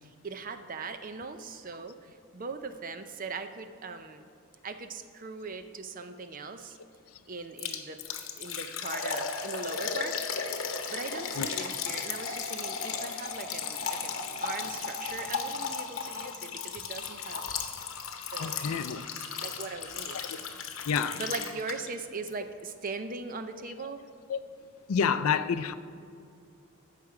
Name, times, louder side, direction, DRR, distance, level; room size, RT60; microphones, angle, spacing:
voice 1, 0.0-4.2 4.6-6.8 7.3-8.0 8.4-10.2 10.9-17.4 18.3-18.7 19.4-20.2 21.1-24.0, right 4 dB, 40° right, 0.5 m, -40 dB
Liquid, 7.6-22.0 22.3-22.4 22.9-23.0, left 6 dB, 60° left, 0.9 m, -35 dB
voice 2, 18.4-19.0 20.1-20.3 20.9-21.2 24.3-24.4 24.9-25.7, left 6 dB, 80° left, 0.4 m, -28 dB
15.0 x 5.8 x 4.8 m
head